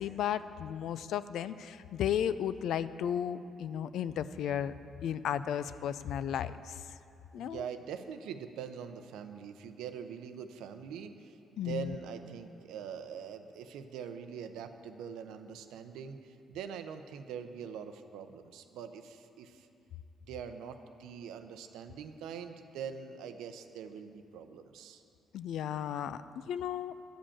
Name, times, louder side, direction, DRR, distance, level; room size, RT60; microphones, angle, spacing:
voice 1, 0.0-4.7 5.0-6.8 7.3-7.6 11.6-12.0 25.3-26.9, left 9 dB, 75° left, 14 dB, 0.3 m, -34 dB
voice 2, 7.4-19.7 20.2-25.0, right 7 dB, 90° right, 8 dB, 0.6 m, -43 dB
11.0 x 5.2 x 8.6 m, 2.6 s
cardioid pair, 90°, 0 cm